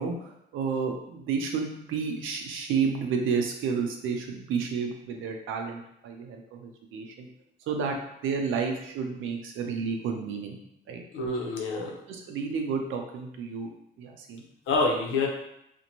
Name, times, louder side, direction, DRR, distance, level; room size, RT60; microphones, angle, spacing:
voice 1, 0.0-7.3 7.7-10.6 10.9-11.0 12.1-13.7 14.0-14.4, right 5 dB, 85° right, 3 dB, 0.5 m, -31 dB
voice 2, 11.1-12.0 14.7-15.3, left 3 dB, 85° left, -1 dB, 0.6 m, -27 dB
2.5 x 2.1 x 2.9 m, 0.79 s
cardioid pair, 90°, 20 cm